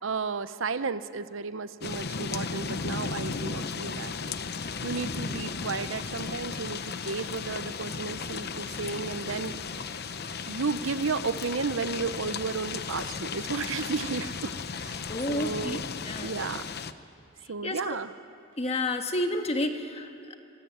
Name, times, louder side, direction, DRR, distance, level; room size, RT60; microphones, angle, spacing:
voice 1, 0.0-4.4 4.8-9.8 10.5-15.9 16.2-16.7 17.5-18.1, right 4 dB, 70° right, 13 dB, 0.8 m, -33 dB
sound 1, 1.8-16.9, left 5 dB, 50° left, 0.9 m, -35 dB
voice 2, 15.1-15.8 16.0-16.3 17.6-18.0 18.6-20.4, left 1 dB, 30° left, 6 dB, 1.6 m, -30 dB
25.5 x 20.0 x 9.3 m, 2.6 s
head